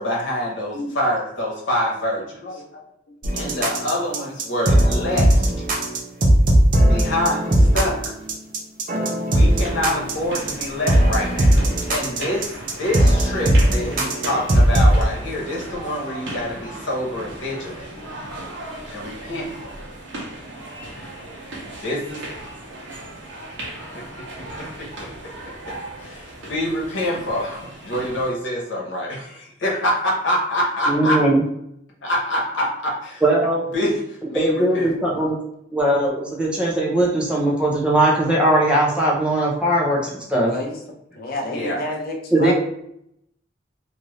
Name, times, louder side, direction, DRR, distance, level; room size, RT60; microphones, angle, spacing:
voice 1, 0.0-2.4 3.3-5.5 6.8-8.1 9.2-11.6 11.9-17.9 18.9-19.7 21.8-22.2 23.9-24.0 24.6-25.7 26.0-31.2 32.0-33.2 33.7-34.9 35.2-35.3 41.5-41.8, left 1 dB, 80° left, -3 dB, 1.0 m, -26 dB
voice 2, 2.4-2.8 40.4-40.7 41.1-42.5, left 2 dB, 50° left, 0 dB, 0.6 m, -29 dB
sound 1, 3.2-15.0, right 1 dB, 45° right, 0.6 m, -18 dB
sound 2, 9.3-28.3, right 1 dB, 75° right, 0.9 m, -36 dB
voice 3, 30.9-31.4 33.2-33.6 34.3-35.4 35.7-40.5 42.3-42.5, right 1 dB, 5° right, -4 dB, 0.6 m, -19 dB
2.7 x 2.5 x 3.2 m, 0.75 s
head